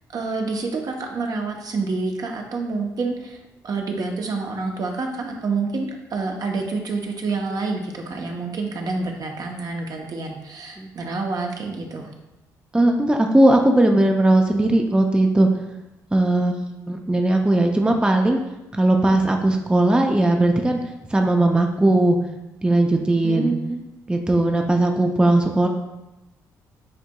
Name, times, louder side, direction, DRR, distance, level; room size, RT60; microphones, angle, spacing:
voice 1, 0.1-12.1 23.2-24.0, right 3 dB, 55° right, 2 dB, 0.7 m, -28 dB
voice 2, 12.7-15.6 16.1-18.4 18.7-20.8 21.1-22.2 22.6-23.5 24.1-25.7, right 1 dB, 10° right, 3 dB, 0.5 m, -18 dB
7.7 x 2.6 x 2.3 m, 0.97 s
supercardioid pair, 65°, 8 cm